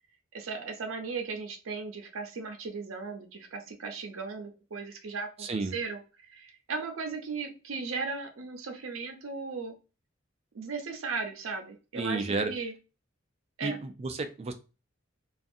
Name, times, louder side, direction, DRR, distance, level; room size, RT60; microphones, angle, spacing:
voice 1, 0.3-6.0 6.3-9.7 10.5-12.7 13.6-13.8, right 4 dB, 80° right, 5 dB, 0.6 m, -37 dB
voice 2, 5.4-5.7 11.9-12.5 13.6-14.5, right 3 dB, 30° right, 8 dB, 0.3 m, -31 dB
2.5 x 2.3 x 2.6 m, 0.31 s
head